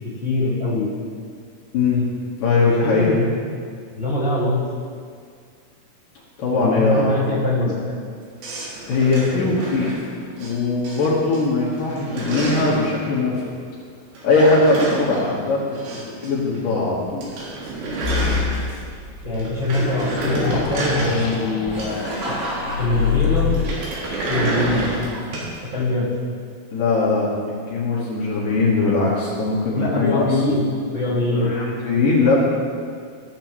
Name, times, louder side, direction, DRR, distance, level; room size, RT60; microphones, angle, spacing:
voice 1, 0.2-0.9 2.8-3.3 3.9-4.6 6.5-7.9 9.3-9.5 19.2-22.4 22.8-23.7 24.3-24.9 25.6-26.1 29.7-31.5, left 2 dB, 25° right, -8 dB, 2.8 m, -23 dB
voice 2, 1.7-2.1 2.4-3.2 6.4-7.0 8.9-9.9 10.3-13.4 14.2-17.3 26.7-30.4 31.3-32.4, left 3 dB, 65° left, -6 dB, 2.7 m, -20 dB
sound 1, 8.4-10.5 10.8-11.4 11.7-12.9 14.1-16.3 16.5-16.6 16.9-17.0 17.2-19.0 19.3-22.4 23.5-25.6, right 2 dB, 75° right, 3.6 m, -29 dB
sound 2, 18.0-23.7, left 7 dB, 85° left, 3.1 m, -26 dB
Laughter, 21.7-25.6, right 1 dB, 50° right, 2.0 m, -32 dB
15.0 x 7.7 x 3.0 m, 2.1 s
omnidirectional pair, 4.6 m